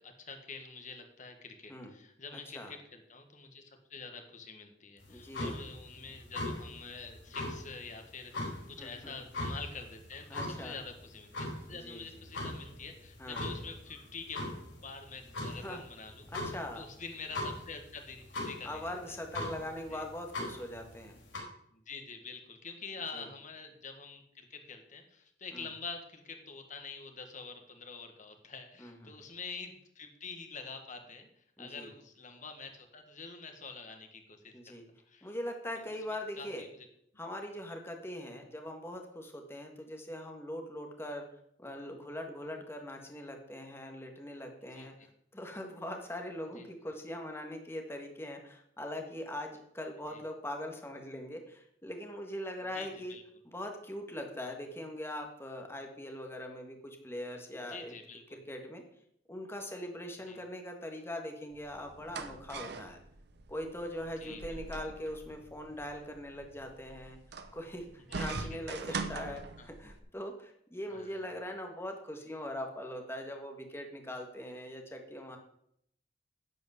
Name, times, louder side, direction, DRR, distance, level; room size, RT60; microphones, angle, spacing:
voice 1, 0.0-14.4 14.8-19.2 19.9-20.0 21.7-34.5 35.1-35.3 36.4-36.9 44.7-44.9 46.6-46.7 50.1-50.2 52.7-53.2 57.7-58.4 60.3-60.4 64.2-64.6 68.1-68.6 69.6-69.7 70.9-71.2, left 4 dB, 45° left, 5 dB, 1.7 m, -46 dB
voice 2, 2.3-2.7 5.1-5.6 8.8-9.1 10.3-10.8 11.7-12.1 13.2-13.4 15.6-15.8 16.3-16.9 18.6-21.1 23.1-23.3 25.5-25.7 28.8-29.1 31.6-31.9 34.5-34.8 35.2-36.7 37.2-41.3 41.6-44.9 45.3-53.2 53.4-57.9 58.3-58.8 59.3-63.0 63.5-67.2 67.5-75.4, left 1 dB, 15° left, 3 dB, 1.6 m, -41 dB
sound 1, 5.0-21.4, left 1 dB, 90° left, 4.2 m, -41 dB
sound 2, 61.5-70.0, right 4 dB, 60° right, 0.9 m, -43 dB
10.5 x 5.2 x 8.1 m, 0.71 s
head